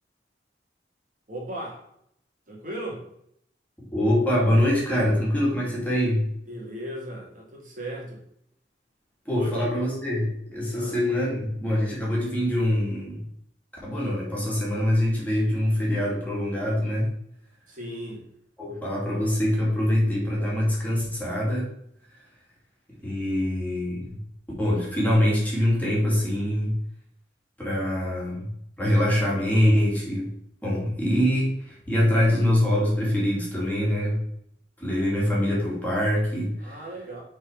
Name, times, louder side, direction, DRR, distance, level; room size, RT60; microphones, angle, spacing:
voice 1, 1.3-1.9 2.5-3.0 6.5-8.2 9.3-9.7 10.7-11.0 17.7-18.2 36.6-37.2, right 1 dB, 50° right, -1 dB, 1.7 m, -36 dB
voice 2, 3.9-6.3 9.3-13.2 13.8-17.1 18.6-21.7 23.0-24.2 24.6-26.8 27.6-28.5 28.8-30.3 30.6-34.2 34.8-36.8, left 1 dB, 10° left, -5 dB, 2.2 m, -24 dB
6.3 x 3.9 x 5.0 m, 0.71 s
head